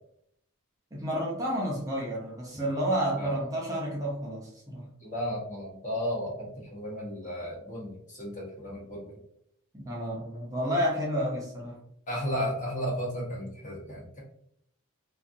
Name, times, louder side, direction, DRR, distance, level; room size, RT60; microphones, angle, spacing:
voice 1, 0.9-4.9 9.7-11.8, equal, 15° right, -5 dB, 0.6 m, -30 dB
voice 2, 5.0-9.1 12.1-14.2, equal, 35° left, -3 dB, 0.9 m, -34 dB
2.4 x 2.4 x 2.5 m, 0.71 s
head